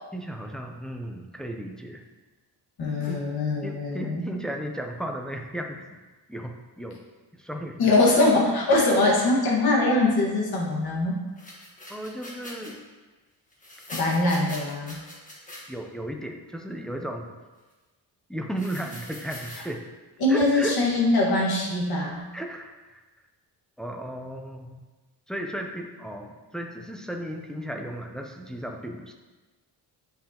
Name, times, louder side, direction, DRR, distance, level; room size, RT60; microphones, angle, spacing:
voice 1, 0.1-2.0 3.1-3.2 3.6-5.8 6.3-6.5 6.8-7.0 7.3-7.9 11.9-12.8 15.7-17.3 18.3-19.8 20.3-20.8 22.3-23.0 23.8-24.8 25.3-29.1, right 1 dB, ahead, 2 dB, 0.5 m, -35 dB
voice 2, 2.8-4.3 7.8-11.2 13.9-14.9 20.2-22.2, left 2 dB, 55° left, -2 dB, 1.7 m, -22 dB
sound 1, 11.4-12.7 13.5-15.6 18.6-19.7, left 1 dB, 20° left, 1.4 m, -42 dB
8.8 x 5.7 x 2.9 m, 1.2 s
cardioid pair, 160°, 43 cm